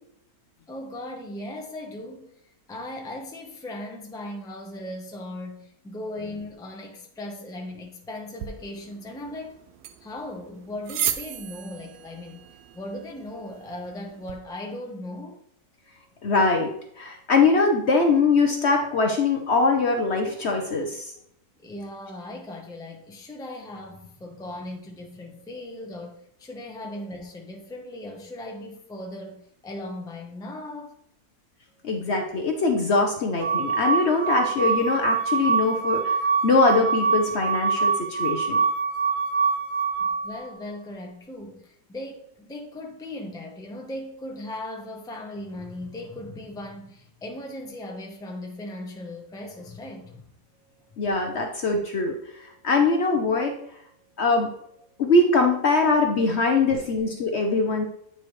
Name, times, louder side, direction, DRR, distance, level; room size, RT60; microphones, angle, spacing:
voice 1, 0.7-2.3 2.7-9.6 10.0-12.4 12.7-15.4 21.6-31.0 40.0-50.2, left 1 dB, 5° left, 1 dB, 0.7 m, -38 dB
sound 1, 8.4-14.4, right 11 dB, 85° right, 1.1 m, -36 dB
voice 2, 16.2-16.7 17.0-21.1 31.8-36.2 36.4-38.6 51.0-53.5 54.2-54.5 55.0-57.8, left 3 dB, 55° left, 3 dB, 0.9 m, -22 dB
sound 2, 33.4-40.4, right 5 dB, 65° right, 0.7 m, -25 dB
9.0 x 4.4 x 3.2 m, 0.72 s
omnidirectional pair, 1.6 m